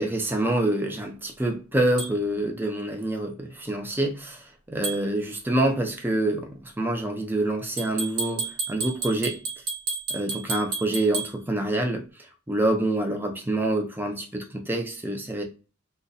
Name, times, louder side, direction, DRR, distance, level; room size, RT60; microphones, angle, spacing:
voice 1, 0.0-9.4 10.1-12.0 12.5-15.4, right 1 dB, 10° right, 0.5 m, -26 dB
sound 1, 2.0-2.1 4.8-5.0 7.8-11.3, right 4 dB, 85° right, 1.3 m, -31 dB
2.6 x 2.2 x 3.9 m
head